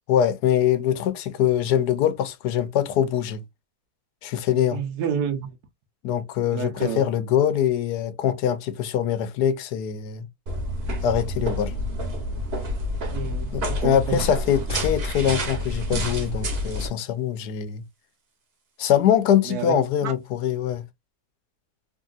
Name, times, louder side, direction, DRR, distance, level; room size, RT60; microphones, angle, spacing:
voice 1, 0.1-3.4 4.2-4.8 6.0-10.3 11.0-11.7 13.5-17.8 18.8-20.8, left 9 dB, 85° left, 1.2 m, -23 dB
voice 2, 4.7-5.6 6.5-7.1 13.1-14.2 19.4-20.1, right 7 dB, 80° right, 1.3 m, -29 dB
sound 1, 10.5-16.9, equal, 45° right, 1.0 m, -28 dB
3.2 x 2.7 x 2.3 m
omnidirectional pair, 1.7 m